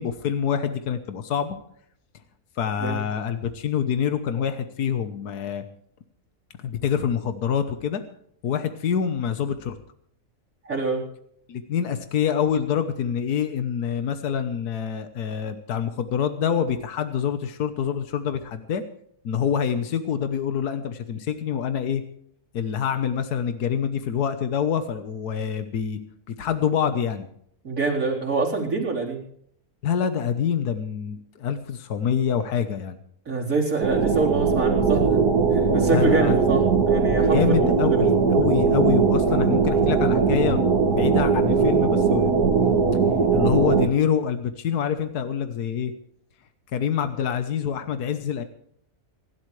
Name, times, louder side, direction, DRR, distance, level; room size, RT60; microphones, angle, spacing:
voice 1, 0.0-1.6 2.6-5.6 6.6-8.0 8.4-9.8 11.5-18.8 19.2-22.0 22.5-26.0 26.3-27.3 29.8-33.0 35.9-36.4 37.3-42.8 43.3-45.9 46.7-48.4, left 8 dB, 85° left, 9 dB, 1.6 m, -26 dB
voice 2, 10.6-11.0 27.6-29.2 33.3-35.2 35.5-38.1, right 3 dB, 60° right, -4 dB, 4.5 m, -25 dB
sound 1, 33.8-43.9, right 5 dB, 80° right, 2.1 m, -20 dB
26.5 x 12.0 x 3.3 m, 0.68 s
omnidirectional pair, 1.6 m